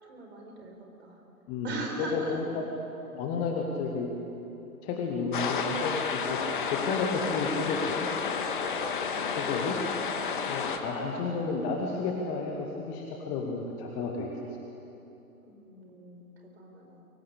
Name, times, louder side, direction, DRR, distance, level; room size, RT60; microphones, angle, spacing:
voice 1, 0.0-1.2 1.6-2.4 8.8-9.2 15.4-17.0, right 2 dB, 45° right, 2 dB, 4.5 m, -41 dB
voice 2, 1.5-2.6 3.1-4.1 4.8-6.4 6.7-8.1 9.4-9.8 10.5-14.3, left 4 dB, 10° left, 1 dB, 1.0 m, -32 dB
sound 1, 5.3-10.8, left 6 dB, 35° left, 1.6 m, -31 dB
23.0 x 18.5 x 8.4 m, 3.0 s
figure-of-eight pair, 135°, 44 cm